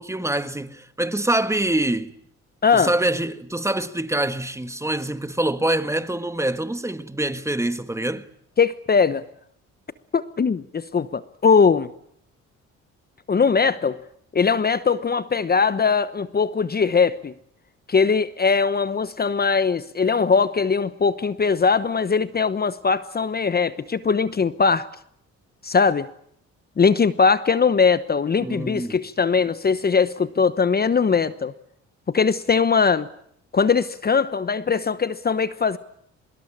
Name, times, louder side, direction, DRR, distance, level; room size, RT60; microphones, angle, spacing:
voice 1, 0.0-2.1 2.7-8.3 28.4-29.0, right 1 dB, 10° right, 1.5 m, -25 dB
voice 2, 2.6-2.9 8.6-9.2 10.1-11.9 13.3-14.0 14.3-17.3 17.9-24.9 25.6-26.1 26.8-31.5 32.1-33.1 33.5-35.8, left 5 dB, 30° left, 1.0 m, -20 dB
25.0 x 21.5 x 8.7 m
cardioid pair, 90°, 30 cm